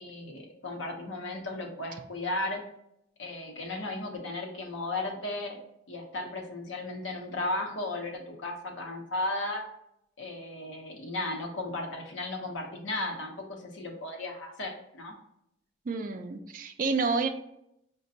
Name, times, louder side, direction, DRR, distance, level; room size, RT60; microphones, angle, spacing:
voice 1, 0.0-2.6 3.2-9.6 10.2-15.1, left 2 dB, 85° left, 1 dB, 0.8 m, -35 dB
voice 2, 15.9-17.3, right 4 dB, 45° right, 6 dB, 0.3 m, -29 dB
5.0 x 2.2 x 2.7 m, 0.77 s
head